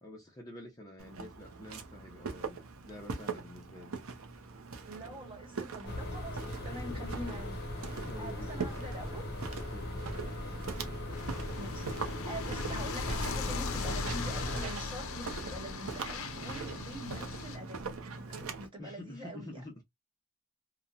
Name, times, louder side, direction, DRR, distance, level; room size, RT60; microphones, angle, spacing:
voice 1, 0.0-4.0 6.7-7.1 8.0-8.6 9.7-10.0 18.8-19.8, left 1 dB, 15° left, 0.6 m, -48 dB
Walk footsteps, 1.0-18.7, right 4 dB, 65° right, 0.6 m, -42 dB
voice 2, 4.9-7.6 8.2-9.4 11.6-17.8 18.3-19.6, right 1 dB, 25° right, 1.2 m, -45 dB
sound 1, 5.8-14.7, left 1 dB, 45° left, 1.0 m, -39 dB
sound 2, 11.1-17.6, left 5 dB, 65° left, 0.5 m, -39 dB
2.9 x 2.1 x 2.4 m
head